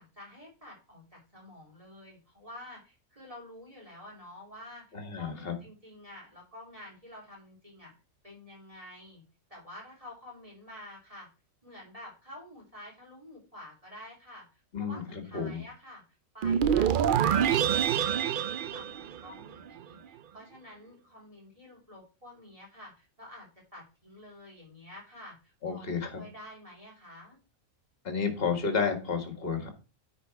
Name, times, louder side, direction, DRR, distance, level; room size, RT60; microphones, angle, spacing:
voice 1, 0.0-4.8 5.1-7.9 8.2-9.2 9.5-11.3 11.6-16.0 16.3-23.5 23.7-25.9 26.1-27.4, left 1 dB, 25° right, -2 dB, 2.8 m, -49 dB
voice 2, 4.9-5.5 14.7-15.6 25.6-26.2 28.0-29.7, left 5 dB, 45° left, 5 dB, 1.9 m, -31 dB
sound 1, 16.4-19.7, right 9 dB, 85° right, 0.4 m, -26 dB
9.5 x 4.2 x 4.5 m, 0.33 s
omnidirectional pair, 1.4 m